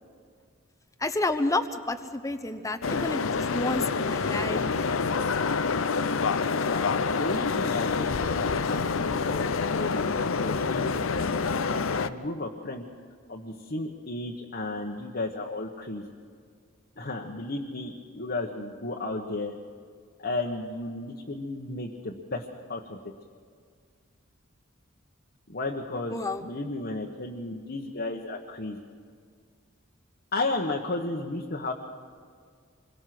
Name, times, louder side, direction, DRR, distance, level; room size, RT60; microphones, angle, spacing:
voice 1, 1.0-4.7 26.1-26.4, left 2 dB, 15° left, 9 dB, 1.0 m, -30 dB
sound 1, 2.8-12.1, left 5 dB, 85° left, 0.7 m, -27 dB
voice 2, 7.1-12.8 13.3-16.1 17.0-19.5 20.2-22.4 22.7-23.1 25.5-28.8 30.3-31.7, left 2 dB, 50° left, -1 dB, 1.4 m, -34 dB
27.0 x 22.0 x 6.1 m, 2.1 s
head